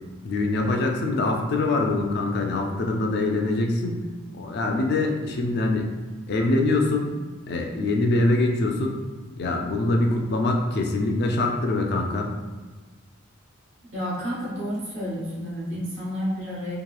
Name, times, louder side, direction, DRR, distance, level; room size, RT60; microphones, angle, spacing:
voice 1, 0.2-4.0 4.3-5.8 6.3-7.1 7.5-9.0 9.4-12.3, left 2 dB, 50° left, 2 dB, 0.3 m, -24 dB
voice 2, 13.9-16.8, equal, 60° right, -7 dB, 1.0 m, -30 dB
2.9 x 2.3 x 2.3 m, 1.3 s
head